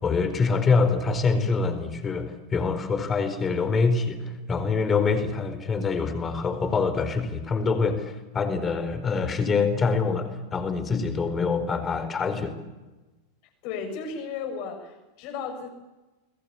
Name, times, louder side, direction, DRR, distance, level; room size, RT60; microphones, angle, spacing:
voice 1, 0.0-4.2 4.5-12.6, left 4 dB, 20° left, 10 dB, 4.5 m, -25 dB
voice 2, 13.6-15.7, left 5 dB, 45° left, 6 dB, 6.9 m, -34 dB
29.0 x 22.0 x 8.5 m, 1.1 s
figure-of-eight pair, 90°, 0 cm